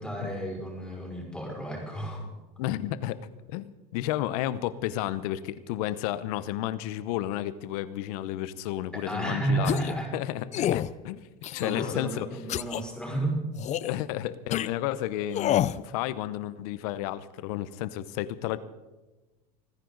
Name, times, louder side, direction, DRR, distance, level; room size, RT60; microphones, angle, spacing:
voice 1, 0.0-2.3 8.9-10.1 11.6-13.4, right 1 dB, 5° left, -2 dB, 5.6 m, -32 dB
voice 2, 2.6-3.2 3.5-9.8 10.1-11.2 11.5-12.3 13.8-18.6, left 13 dB, 75° left, 16 dB, 0.9 m, -32 dB
sound 1, 9.6-10.0 10.5-10.9 11.4-12.0 12.5-12.8 13.6-13.9 14.5-14.7 15.3-15.8, left 12 dB, 40° left, 0.5 m, -28 dB
28.5 x 10.0 x 4.0 m, 1.2 s
supercardioid pair, 100°, 19 cm